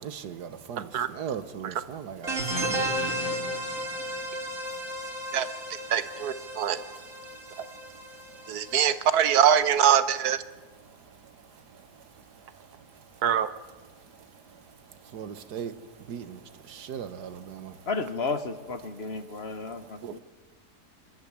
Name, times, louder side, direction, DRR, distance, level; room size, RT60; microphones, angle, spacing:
voice 1, 0.0-4.2 4.5-5.3 6.4-8.8 10.6-13.1 14.0-17.9 19.4-19.5 19.8-20.2, right 8 dB, 90° right, 1.7 m, -42 dB
sound 1, 2.2-9.6, right 1 dB, 55° right, 2.9 m, -34 dB
voice 2, 5.9-6.8 8.5-10.4 13.2-13.5 20.0-20.2, right 9 dB, 70° right, 1.4 m, -23 dB
voice 3, 17.9-20.2, left 3 dB, 45° left, 1.1 m, -33 dB
24.5 x 12.0 x 9.5 m
omnidirectional pair, 1.7 m